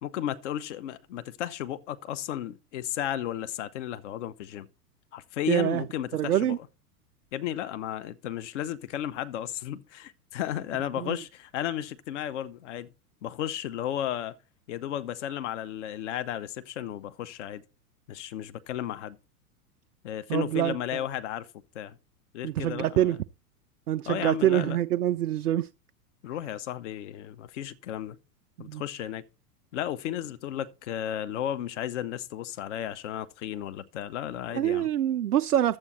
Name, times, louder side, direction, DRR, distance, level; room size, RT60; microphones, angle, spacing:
voice 1, 0.0-4.7 5.1-6.7 7.3-12.9 13.2-14.4 14.7-17.6 18.1-19.2 20.0-21.5 21.7-22.0 22.3-23.2 24.1-24.8 26.2-28.2 28.6-29.2 29.7-34.9, left 11 dB, 50° left, 0.9 m, -34 dB
voice 2, 5.5-5.8 6.1-6.6 11.0-11.2 20.3-20.7 22.4-23.2 23.9-25.7 28.6-28.8 34.5-35.8, right 12 dB, 70° right, 0.5 m, -25 dB
10.5 x 7.6 x 4.1 m
figure-of-eight pair, 90°, 46 cm